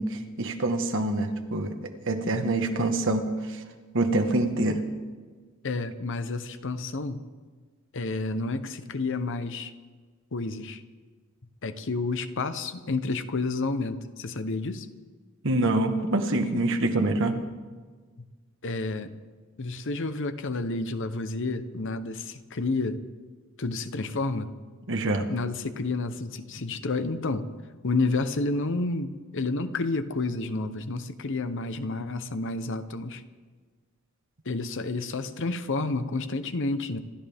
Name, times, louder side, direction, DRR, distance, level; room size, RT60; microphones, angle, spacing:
voice 1, 0.0-3.6 3.9-4.8 15.4-17.4 24.9-25.3, right 2 dB, 65° right, 6 dB, 1.5 m, -26 dB
voice 2, 5.6-7.2 7.9-9.7 10.3-10.8 11.6-14.9 18.6-19.1 19.6-23.0 23.6-24.5 25.3-27.5 27.8-33.2 34.4-37.0, left 3 dB, 60° left, 11 dB, 0.9 m, -30 dB
27.0 x 13.0 x 3.6 m, 1.5 s
head